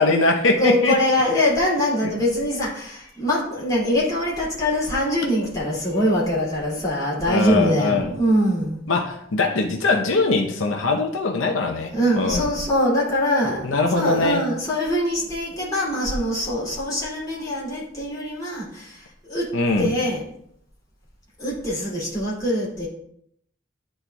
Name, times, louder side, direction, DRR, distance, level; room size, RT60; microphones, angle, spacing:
voice 1, 0.0-1.0 1.3-1.4 2.0-2.1 7.3-8.1 8.9-11.9 12.2-12.5 13.6-14.4 19.5-19.9, left 3 dB, 85° left, 2 dB, 0.7 m, -21 dB
voice 2, 0.6-8.8 11.9-19.5 19.8-20.2 21.4-22.9, left 1 dB, 20° left, -6 dB, 2.4 m, -23 dB
11.0 x 4.4 x 2.2 m, 0.71 s
head